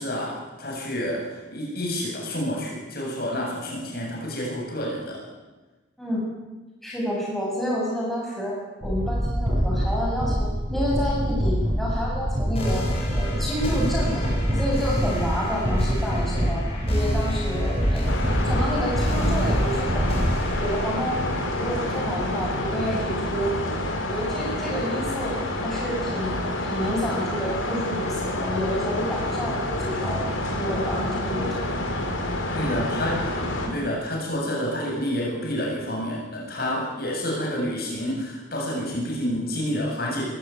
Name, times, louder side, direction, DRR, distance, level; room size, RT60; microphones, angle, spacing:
voice 1, 0.0-5.2 32.5-33.3 33.7-40.2, equal, 50° left, -2 dB, 7.8 m, -29 dB
voice 2, 6.8-8.6 8.8-14.3 14.5-20.1 20.5-21.2 21.5-23.5 24.0-25.4 25.6-26.4 26.6-30.3 30.6-31.6 33.6-33.7, equal, ahead, -5 dB, 7.7 m, -29 dB
sound 1, 8.8-20.9, equal, 30° right, 8.0 m, -25 dB
sound 2, 12.5-23.5, equal, 30° left, 7.1 m, -33 dB
sound 3, 18.1-33.7, left 1 dB, 85° left, 4.6 m, -28 dB
22.0 x 16.0 x 9.5 m, 1.2 s
head